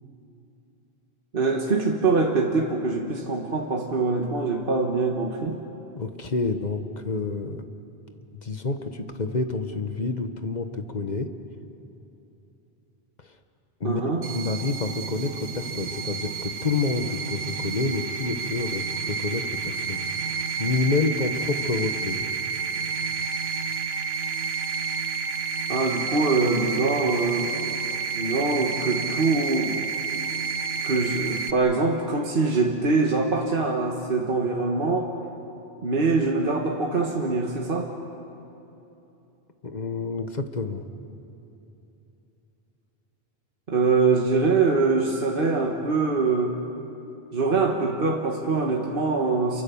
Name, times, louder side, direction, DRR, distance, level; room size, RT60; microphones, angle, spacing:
voice 1, 1.3-5.6 13.8-14.2 25.7-27.5 28.1-29.8 30.8-35.1 35.8-37.9 43.7-46.6 47.3-49.6, right 3 dB, 60° right, 0 dB, 1.7 m, -23 dB
voice 2, 6.0-7.6 8.4-11.3 13.8-22.2 39.6-40.8, left 3 dB, 45° left, 7 dB, 1.3 m, -28 dB
sound 1, 14.2-31.5, right 5 dB, 75° right, 1.3 m, -30 dB
28.5 x 24.0 x 7.1 m, 3.0 s
omnidirectional pair, 1.1 m